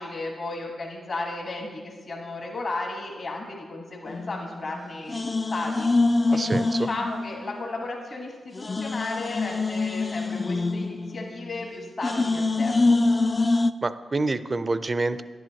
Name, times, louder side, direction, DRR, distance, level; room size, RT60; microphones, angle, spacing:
voice 1, 0.0-5.9 6.3-13.0, left 2 dB, 55° left, 0 dB, 1.3 m, -34 dB
sound 1, 4.1-4.8 5.1-7.7 8.0-8.1 8.5-11.6 12.0-13.7, left 3 dB, 35° left, 0.3 m, -25 dB
voice 2, 6.3-6.9 13.8-15.2, right 3 dB, 40° right, 13 dB, 0.4 m, -27 dB
10.5 x 7.7 x 2.9 m, 1.5 s
supercardioid pair, 45°, 0 cm